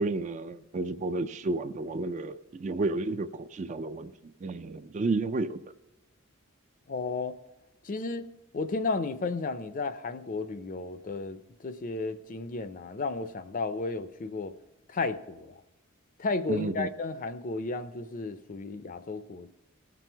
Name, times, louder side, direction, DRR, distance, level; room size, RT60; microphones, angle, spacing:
voice 1, 0.0-5.6 16.5-16.9, right 3 dB, 35° right, 11 dB, 0.3 m, -31 dB
voice 2, 6.9-7.3 7.8-8.3 8.5-14.5 14.9-15.5 16.2-19.5, left 3 dB, 40° left, 12 dB, 0.5 m, -33 dB
17.5 x 6.1 x 4.5 m, 1.1 s
head